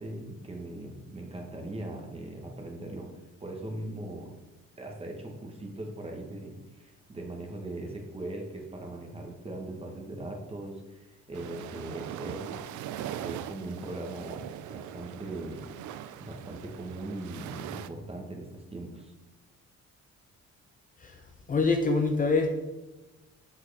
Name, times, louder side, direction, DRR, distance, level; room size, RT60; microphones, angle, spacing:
voice 1, 0.0-3.1 3.4-4.4 4.8-12.6 13.2-15.9 16.2-19.1, right 2 dB, 20° right, 1 dB, 1.2 m, -40 dB
sound 1, 11.3-17.9, right 10 dB, 85° right, 0.5 m, -41 dB
voice 2, 21.5-22.5, left 4 dB, 30° left, 3 dB, 0.6 m, -24 dB
7.4 x 6.2 x 3.3 m, 1.1 s
cardioid pair, 150°, 29 cm